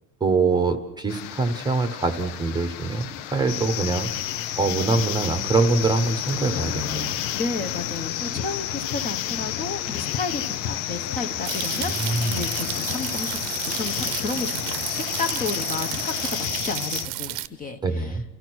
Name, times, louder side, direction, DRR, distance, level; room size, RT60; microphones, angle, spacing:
voice 1, 0.2-4.1 4.6-7.2 12.0-12.4 17.8-18.2, right 3 dB, 10° right, 8 dB, 1.0 m, -24 dB
sound 1, 1.1-16.5, left 11 dB, 80° left, 1.2 m, -37 dB
sound 2, 3.5-17.1, left 13 dB, 60° left, 0.8 m, -31 dB
voice 2, 7.3-18.2, left 4 dB, 20° left, 7 dB, 1.0 m, -32 dB
sound 3, 11.4-17.5, right 16 dB, 60° right, 0.8 m, -32 dB
29.0 x 14.5 x 6.1 m, 0.94 s
cardioid pair, 175°, 39 cm